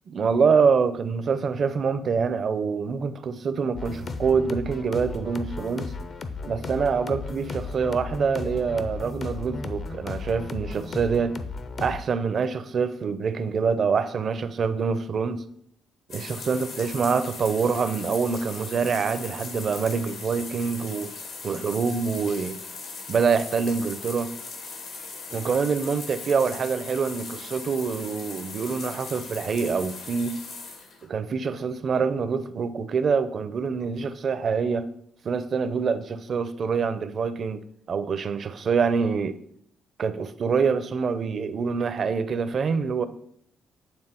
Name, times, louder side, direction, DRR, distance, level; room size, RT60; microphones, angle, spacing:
voice 1, 0.1-5.9 6.5-11.4 11.8-15.4 16.1-21.1 21.4-22.6 23.1-24.3 25.3-30.4 31.1-34.9 35.2-39.4 40.0-43.1, right 5 dB, 50° right, 0.5 m, -25 dB
sound 1, 3.7-12.0, left 3 dB, 50° left, 0.6 m, -35 dB
sound 2, 16.1-31.0, left 4 dB, 80° left, 1.7 m, -39 dB
8.8 x 3.5 x 4.4 m
cardioid pair, 90°, 0 cm